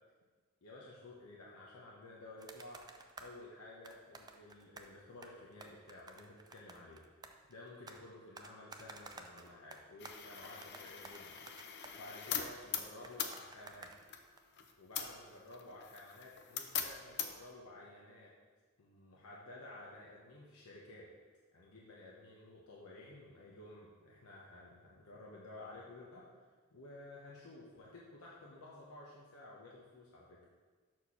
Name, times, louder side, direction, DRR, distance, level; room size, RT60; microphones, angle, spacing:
voice 1, 0.6-2.9 3.2-7.0 7.5-11.4 11.9-13.9 14.8-18.3 18.8-21.1 21.5-26.3 26.7-30.4, left 2 dB, 80° left, -4 dB, 1.0 m, -53 dB
sound 1, 2.4-3.4 3.8-4.9 5.2-8.0 8.3-14.4, right 3 dB, 20° right, 0.4 m, -54 dB
sound 2, 10.0-17.5, left 8 dB, 50° left, 0.6 m, -43 dB
6.5 x 4.5 x 5.7 m, 1.4 s
head